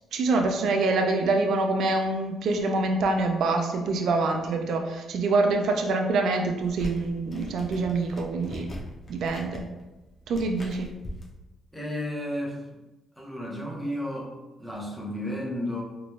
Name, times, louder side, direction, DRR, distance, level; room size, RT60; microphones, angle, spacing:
voice 1, 0.1-8.7 9.1-9.6 10.3-10.9, right 3 dB, 70° right, 3 dB, 0.3 m, -25 dB
sound 1, 6.6-11.3, left 1 dB, 35° left, 0.9 m, -41 dB
voice 2, 11.7-12.7 13.2-14.3 14.6-15.8, left 1 dB, ahead, -4 dB, 1.0 m, -32 dB
4.0 x 3.2 x 2.3 m, 1.1 s
cardioid pair, 90°, 0 cm